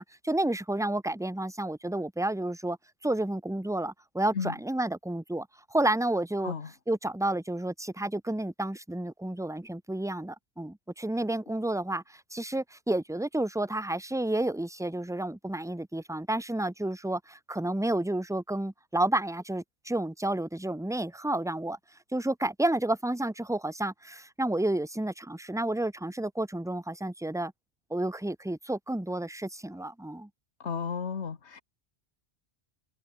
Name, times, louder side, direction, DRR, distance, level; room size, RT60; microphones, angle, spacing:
voice 1, 0.0-2.8 3.0-6.5 6.9-21.8 22.1-27.5 27.9-30.3, right 1 dB, 5° right, 0.9 m, -30 dB
voice 2, 30.6-31.6, left 6 dB, 90° left, 1.7 m, -33 dB
omnidirectional pair, 1.1 m